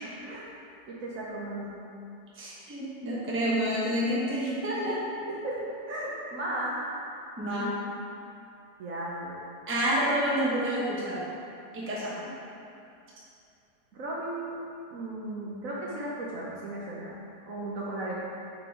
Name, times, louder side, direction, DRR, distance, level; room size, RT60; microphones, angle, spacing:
voice 1, 0.0-0.5 0.9-1.7 5.0-6.7 8.8-9.3 13.9-17.1 17.5-18.3, right 1 dB, 60° right, -5 dB, 1.0 m, -36 dB
voice 2, 2.3-5.0 7.4-7.7 9.7-11.3 11.7-12.3, equal, 10° right, -7 dB, 0.7 m, -29 dB
6.0 x 3.8 x 4.5 m, 2.7 s
omnidirectional pair, 1.9 m